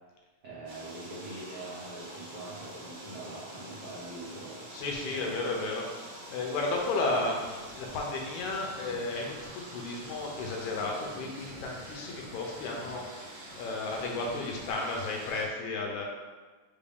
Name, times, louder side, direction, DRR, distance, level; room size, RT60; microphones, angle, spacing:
voice 1, 0.4-4.6 5.1-5.3, right 2 dB, 90° right, -10 dB, 0.9 m, -43 dB
sound 1, 0.7-15.4, right 1 dB, 65° right, 1.4 m, -46 dB
voice 2, 4.7-13.1 13.6-16.0, left 3 dB, 80° left, 0 dB, 1.9 m, -33 dB
5.1 x 2.6 x 3.3 m, 1.3 s
omnidirectional pair, 3.4 m